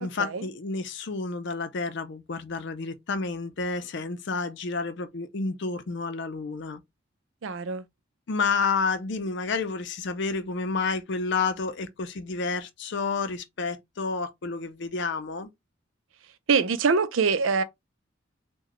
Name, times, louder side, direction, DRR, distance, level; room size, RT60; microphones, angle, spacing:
voice 1, 0.0-6.8 8.3-15.5, left 4 dB, 60° left, 0.5 m, -30 dB
voice 2, 7.4-7.8 16.5-17.6, right 5 dB, 85° right, 0.5 m, -24 dB
3.8 x 2.2 x 3.0 m
head